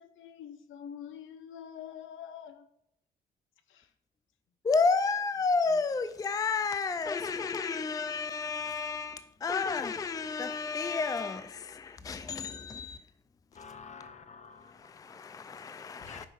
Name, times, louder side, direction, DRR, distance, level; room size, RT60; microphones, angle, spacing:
voice 1, 0.0-2.7 3.7-3.9 5.3-6.2, left 9 dB, 85° left, 0.8 m, -46 dB
voice 2, 4.6-13.0 14.8-16.3, left 4 dB, 20° left, 0.4 m, -31 dB
voice 3, 13.5-15.4 16.0-16.3, left 5 dB, 35° left, 1.0 m, -50 dB
5.7 x 5.1 x 6.4 m
cardioid pair, 90°, 20 cm